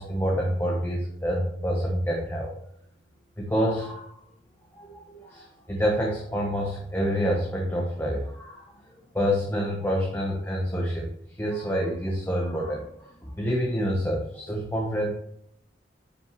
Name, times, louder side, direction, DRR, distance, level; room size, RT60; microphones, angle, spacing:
voice 1, 0.0-2.5 3.4-4.1 4.8-8.6 9.1-11.1 11.4-15.1, equal, 15° left, -1 dB, 1.0 m, -27 dB
9.8 x 5.8 x 3.1 m, 0.69 s
head